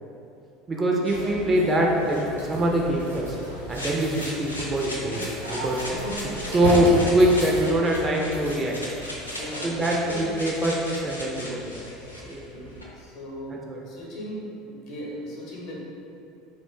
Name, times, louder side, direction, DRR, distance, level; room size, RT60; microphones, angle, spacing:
voice 1, 0.7-2.2 2.5-3.4 3.7-5.2 5.5-5.8 6.5-8.7 9.6-11.8 12.3-12.4 13.7-13.8, right 1 dB, 25° right, -1 dB, 0.3 m, -23 dB
sound 1, 1.0-12.8, left 1 dB, 85° left, 0.3 m, -38 dB
sound 2, 1.1-9.5, right 1 dB, 90° right, 0.8 m, -34 dB
voice 2, 5.8-6.4 9.3-10.3 12.1-15.8, equal, 50° left, -4 dB, 0.7 m, -38 dB
2.4 x 2.1 x 3.5 m, 2.6 s
figure-of-eight pair, 70°, 0 cm